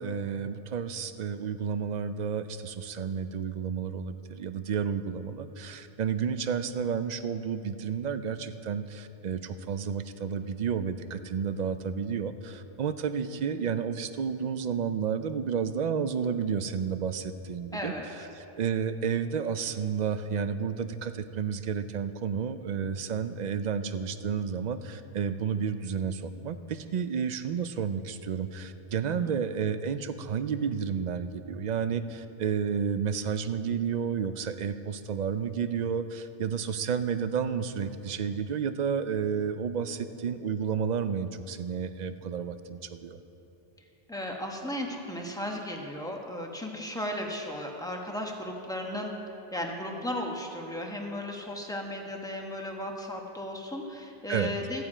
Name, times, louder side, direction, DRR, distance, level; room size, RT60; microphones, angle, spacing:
voice 1, 0.0-17.9 18.6-43.2 54.3-54.5, right 7 dB, 55° right, 11 dB, 0.5 m, -31 dB
voice 2, 17.7-18.1 29.1-29.4 44.1-49.1 49.5-54.8, left 1 dB, 5° left, 1 dB, 1.0 m, -35 dB
14.0 x 9.3 x 4.9 m, 3.0 s
omnidirectional pair, 1.0 m